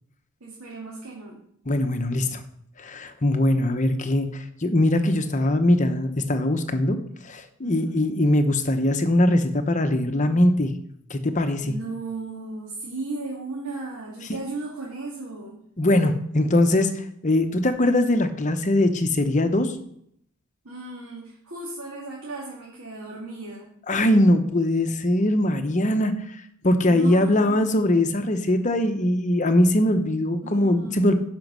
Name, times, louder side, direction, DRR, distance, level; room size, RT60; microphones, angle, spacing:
voice 1, 0.4-1.4 7.6-7.9 11.6-15.6 20.6-23.7 26.8-27.7 30.4-31.0, right 3 dB, 85° right, -4 dB, 2.4 m, -35 dB
voice 2, 1.7-2.4 2.8-7.0 7.2-10.7 11.1-11.7 14.3-14.4 15.8-19.8 23.9-26.1 26.6-31.1, left 1 dB, 35° left, 8 dB, 0.8 m, -21 dB
10.5 x 5.2 x 6.1 m, 0.70 s
head